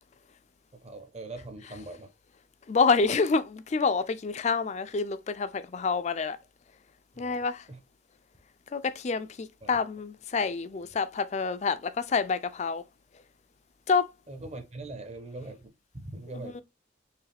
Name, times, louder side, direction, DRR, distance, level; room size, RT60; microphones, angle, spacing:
voice 1, 0.7-2.1 7.2-7.8 9.6-9.8 10.7-10.8 14.3-16.6, right 2 dB, 35° right, 0.9 m, -42 dB
voice 2, 2.7-6.4 7.2-7.6 8.7-12.8 13.9-14.1 16.3-16.6, left 4 dB, 35° left, 0.4 m, -27 dB
4.7 x 3.0 x 3.4 m
head